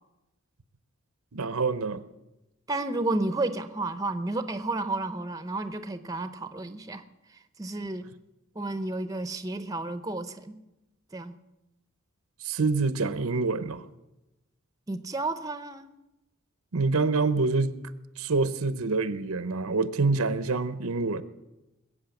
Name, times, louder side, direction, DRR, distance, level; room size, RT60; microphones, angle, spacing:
voice 1, 1.3-2.0 12.4-13.8 16.7-17.7 18.2-21.2, right 3 dB, 75° right, 0.8 m, -26 dB
voice 2, 2.7-7.0 7.3-8.1 8.5-10.6 11.1-11.4 14.9-15.9, right 2 dB, 15° right, 0.7 m, -32 dB
21.0 x 8.4 x 7.2 m
head